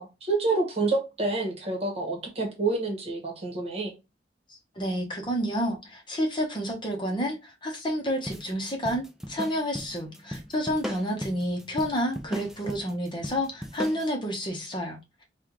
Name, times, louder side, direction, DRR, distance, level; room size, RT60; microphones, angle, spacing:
voice 1, 0.0-3.9, right 3 dB, 35° right, 1.4 m, -28 dB
voice 2, 4.5-15.0, equal, 25° left, 0.9 m, -30 dB
sound 1, 8.3-14.1, equal, 5° right, 0.5 m, -38 dB
5.5 x 2.4 x 3.0 m
head